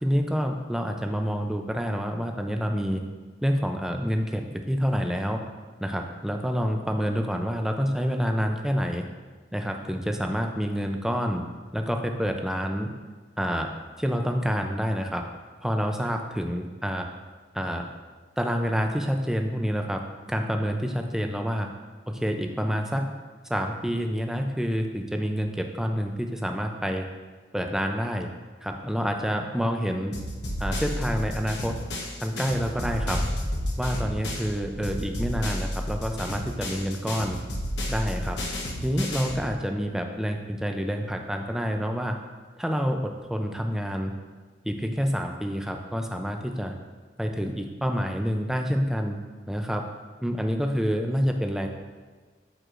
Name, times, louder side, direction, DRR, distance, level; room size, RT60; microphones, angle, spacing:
voice 1, 0.0-3.0 3.4-5.4 5.8-9.0 9.5-11.4 11.7-12.9 13.4-13.7 14.0-15.2 15.6-17.1 17.5-17.8 18.4-20.0 20.3-21.7 22.1-23.1 23.5-27.1 27.5-28.3 28.6-30.1 30.6-31.8 32.2-33.2 33.8-37.4 37.9-38.4 38.8-42.1 42.6-44.1 44.6-46.7 47.2-49.2 49.5-49.9 50.2-51.7, equal, 5° right, 4 dB, 0.4 m, -28 dB
sound 1, 30.1-34.5 34.8-39.5, left 1 dB, 75° left, 1.1 m, -32 dB
sound 2, 32.7-35.5, equal, 60° right, 1.4 m, -33 dB
12.5 x 4.7 x 2.5 m, 1.4 s
head